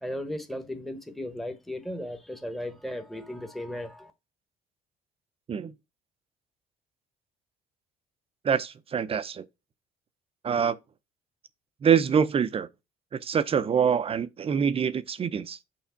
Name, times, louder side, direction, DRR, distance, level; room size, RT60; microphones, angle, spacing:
voice 1, 0.0-4.1, left 1 dB, ahead, 1.0 m, -36 dB
voice 2, 8.4-9.4 10.4-10.8 11.8-12.7 13.1-15.6, right 7 dB, 35° right, 0.6 m, -25 dB
5.9 x 3.5 x 5.7 m
cardioid pair, 110°, 17 cm